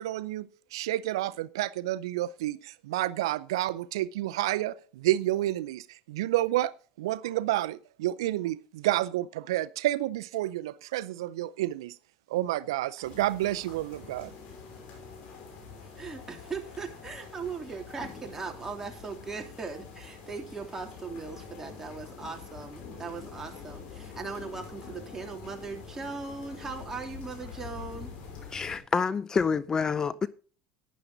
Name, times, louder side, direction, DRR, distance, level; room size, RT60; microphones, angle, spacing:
voice 1, 0.0-11.9 12.3-14.3, right 15 dB, 90° right, 0.5 m, -30 dB
sound 1, 13.0-28.8, left 5 dB, 60° left, 6.1 m, -45 dB
voice 2, 16.0-28.1, right 4 dB, 20° right, 3.0 m, -39 dB
voice 3, 28.5-30.3, left 5 dB, 25° left, 0.5 m, -27 dB
12.0 x 10.0 x 3.9 m
supercardioid pair, 105°, 2 cm